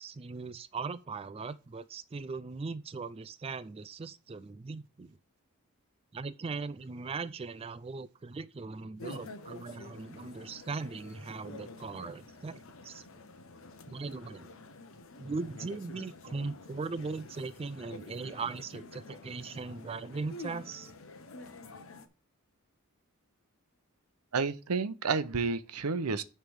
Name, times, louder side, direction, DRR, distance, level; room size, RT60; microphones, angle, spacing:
voice 1, 0.0-5.2 6.1-13.0 13.9-14.5 15.2-20.9, right 4 dB, 25° right, 0.3 m, -39 dB
sound 1, 9.0-22.1, left 2 dB, 60° left, 0.9 m, -49 dB
voice 2, 24.3-26.2, right 4 dB, 80° right, 0.7 m, -30 dB
9.7 x 3.4 x 6.3 m
head